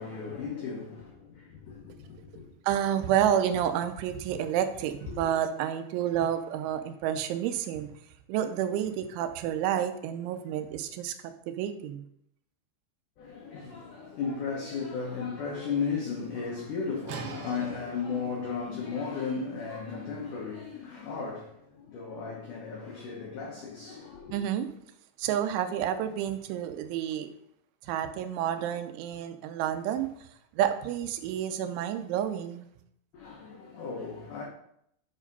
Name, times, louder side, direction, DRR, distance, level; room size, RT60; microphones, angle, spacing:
voice 1, 0.0-2.5 5.1-5.2 13.2-24.4 33.1-34.4, left 5 dB, 75° left, 1.9 m, -35 dB
voice 2, 2.6-7.9 8.3-11.1 11.5-12.0 24.3-24.7 25.2-27.3 27.8-30.3 30.5-32.7, right 10 dB, 90° right, 3.1 m, -29 dB
sound 1, 17.1-22.7, right 4 dB, 70° right, 2.7 m, -46 dB
8.3 x 5.0 x 5.4 m
omnidirectional pair, 5.3 m